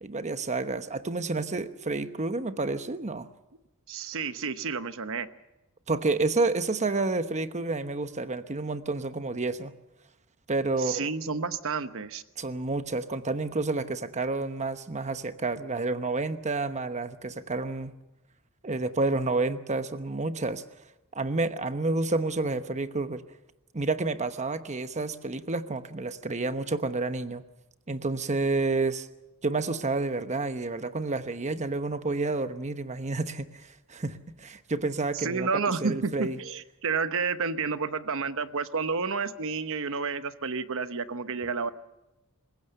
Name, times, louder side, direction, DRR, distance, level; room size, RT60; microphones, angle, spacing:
voice 1, 0.0-3.3 5.9-9.7 10.5-11.1 12.4-17.9 18.6-20.6 21.1-23.2 23.7-27.4 27.9-29.1 29.4-33.4 33.9-35.5 35.8-36.4, right 3 dB, 30° right, 10 dB, 1.0 m, -29 dB
voice 2, 3.9-5.3 10.8-12.2 35.1-41.7, right 5 dB, 65° right, 11 dB, 1.0 m, -30 dB
26.5 x 16.0 x 6.8 m, 0.96 s
head